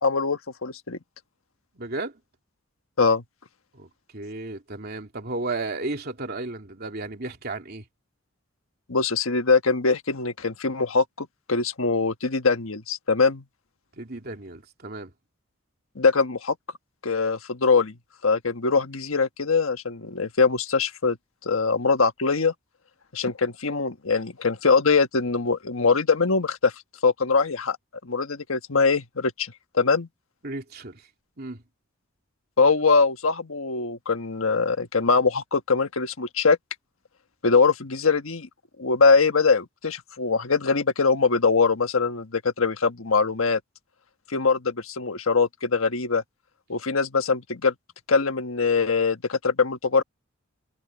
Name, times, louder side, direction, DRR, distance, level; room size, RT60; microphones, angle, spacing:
voice 1, 0.0-1.0 3.0-3.2 8.9-13.4 15.9-16.5 17.0-17.9 18.2-21.2 21.4-22.5 23.1-26.7 27.0-27.8 28.0-30.1 32.6-36.6 37.4-38.5 38.8-43.6 44.3-46.2 46.7-47.7 48.1-50.0, left 4 dB, 80° left, 1.4 m, -22 dB
voice 2, 1.8-2.1 3.7-7.8 14.0-15.1 30.4-31.0 31.4-31.6, right 2 dB, 50° right, 2.9 m, -33 dB
head